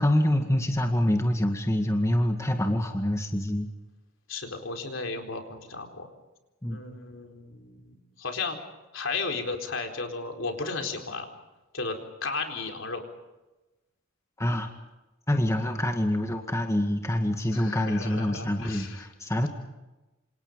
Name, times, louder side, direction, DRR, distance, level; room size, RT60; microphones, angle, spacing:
voice 1, 0.0-3.7 6.6-6.8 14.4-14.7 15.3-19.5, left 1 dB, 15° left, 4 dB, 2.0 m, -26 dB
voice 2, 4.3-6.1 6.7-8.6 8.9-11.3 11.7-13.0 17.5-19.1, left 3 dB, 65° left, 4 dB, 4.2 m, -34 dB
28.0 x 27.5 x 5.4 m, 1.1 s
head